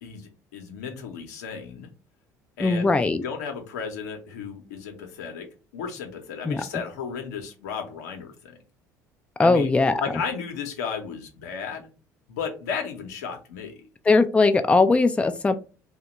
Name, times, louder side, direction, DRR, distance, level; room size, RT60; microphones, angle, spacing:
voice 1, 0.0-1.9 2.6-5.5 5.7-8.6 9.4-9.7 10.0-11.9 12.3-13.9, left 6 dB, 80° left, 4 dB, 0.8 m, -34 dB
voice 2, 2.6-3.2 6.5-6.8 9.4-10.0 14.1-15.5, left 3 dB, 15° left, 8 dB, 0.4 m, -20 dB
2.8 x 2.3 x 3.9 m, 0.33 s
hypercardioid pair, 65°, 9 cm